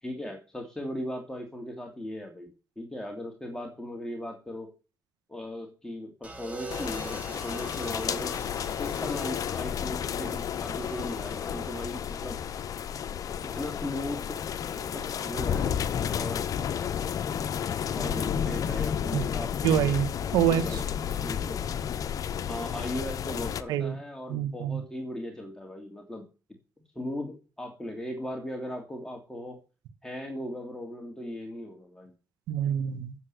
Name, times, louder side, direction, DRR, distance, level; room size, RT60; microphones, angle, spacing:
voice 1, 0.0-4.7 5.3-8.3 8.8-12.4 13.5-14.4 14.8-15.8 16.1-16.5 17.9-20.0 20.5-21.6 22.5-26.2 26.9-29.6 30.0-32.1, left 1 dB, 10° left, 3.0 m, -38 dB
sound 1, 6.2-14.4 15.6-16.0, right 3 dB, 20° right, 5.4 m, -46 dB
sound 2, 6.7-23.6, left 8 dB, 60° left, 0.8 m, -32 dB
voice 2, 19.6-20.8 23.7-24.0 24.3-24.8 32.5-33.1, right 9 dB, 90° right, 1.4 m, -26 dB
9.7 x 7.7 x 7.8 m
cardioid pair, 75°, 7 cm